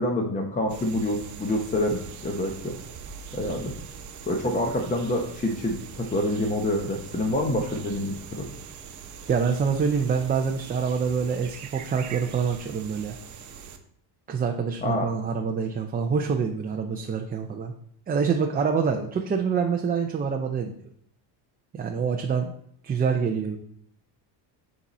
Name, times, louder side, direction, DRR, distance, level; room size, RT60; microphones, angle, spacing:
voice 1, 0.0-2.7 3.3-3.7 4.3-8.5 14.8-15.1, left 1 dB, 15° left, 2 dB, 0.9 m, -27 dB
sound 1, 0.7-13.8, right 6 dB, 40° right, 1.0 m, -42 dB
voice 2, 9.3-13.2 14.3-17.7 18.1-20.8 21.7-22.5 22.8-23.6, right 6 dB, 20° right, 3 dB, 0.5 m, -26 dB
10.0 x 4.2 x 4.2 m, 0.67 s
cardioid pair, 130°, 47 cm